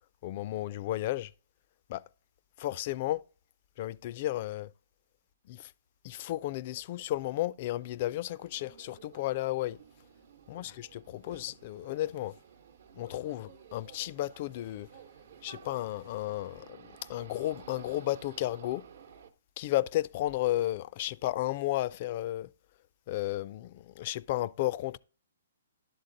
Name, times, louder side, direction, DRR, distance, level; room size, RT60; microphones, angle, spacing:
voice 1, 0.2-1.3 1.9-2.0 2.6-3.2 3.8-4.7 5.5-5.7 6.0-9.8 10.5-12.3 12.9-14.9 15.4-18.8 19.6-22.5 23.1-25.0, left 15 dB, 40° left, 0.3 m, -33 dB
sound 1, 7.8-19.3, right 7 dB, 65° right, 0.9 m, -54 dB
11.0 x 3.9 x 3.8 m
hypercardioid pair, 150°, 0 cm